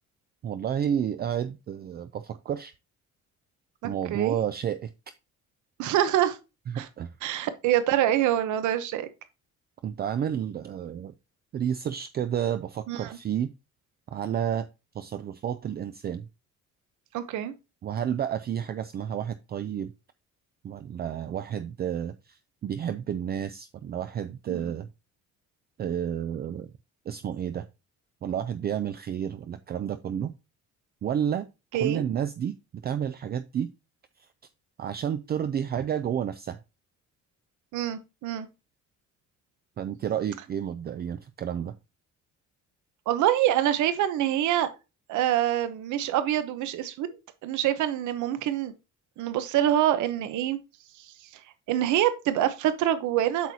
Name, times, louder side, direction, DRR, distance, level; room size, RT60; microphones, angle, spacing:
voice 1, 0.4-2.7 3.8-4.9 6.7-7.1 9.8-11.1 11.5-13.5 14.1-14.7 14.9-16.3 17.8-19.9 20.6-24.9 25.8-26.7 27.1-27.7 28.2-30.3 31.0-31.5 31.7-33.7 34.2-34.3 34.8-36.6 39.8-41.8, right 9 dB, 35° right, 0.4 m, -31 dB
voice 2, 3.8-4.4 5.8-6.4 6.7-6.9 7.2-9.1 12.9-13.2 17.1-17.5 24.5-24.6 31.7-32.0 37.7-38.5 43.1-44.7 45.1-47.1 47.4-48.7 49.2-50.6 51.7-53.5, right 12 dB, 85° right, 0.9 m, -25 dB
8.1 x 6.2 x 2.8 m
cardioid pair, 160°, 29 cm